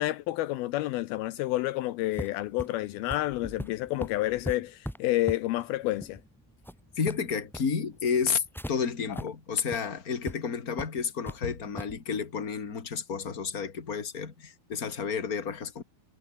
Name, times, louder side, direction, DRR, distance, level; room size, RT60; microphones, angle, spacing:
voice 1, 0.0-6.2, left 16 dB, 80° left, 2.6 m, -29 dB
sound 1, 2.1-8.7 9.1-9.2 9.6-9.8 10.3-10.4 10.8-11.4 11.8-12.0, equal, ahead, 1.8 m, -40 dB
voice 2, 7.0-15.8, left 6 dB, 25° left, 2.4 m, -31 dB
omnidirectional pair, 4.5 m